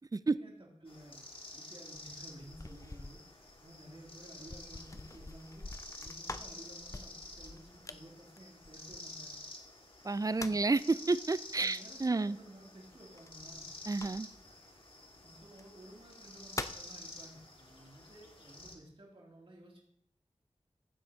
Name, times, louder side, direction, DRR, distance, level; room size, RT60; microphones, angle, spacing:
voice 1, 0.1-1.2 1.5-5.7 6.0-9.4 10.4-10.7 11.6-13.7 15.2-19.8, right 1 dB, 45° right, -3 dB, 2.7 m, -54 dB
sound 1, 0.9-18.8, left 2 dB, 45° left, 1.8 m, -50 dB
sound 2, 1.9-9.4 10.0-10.8 13.2-14.5 15.5-15.6 16.1-16.9, left 2 dB, 25° left, 0.5 m, -46 dB
voice 2, 10.0-12.4 13.9-14.3, right 3 dB, 30° right, 16 dB, 0.4 m, -30 dB
15.5 x 7.7 x 2.8 m, 0.70 s
wide cardioid pair, 45°, 12 cm